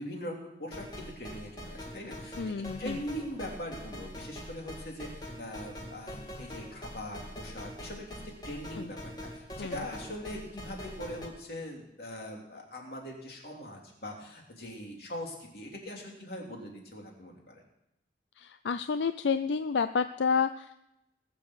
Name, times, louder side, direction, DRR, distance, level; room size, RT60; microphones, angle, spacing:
voice 1, 0.0-5.1 5.4-9.0 9.3-17.6, left 1 dB, 60° left, 0 dB, 3.1 m, -41 dB
sound 1, 0.7-11.3, equal, 25° left, 1.8 m, -44 dB
voice 2, 2.4-3.0 8.8-8.9 9.6-9.7 18.4-20.8, left 5 dB, 85° left, 11 dB, 0.5 m, -30 dB
19.5 x 6.9 x 6.4 m, 0.85 s
head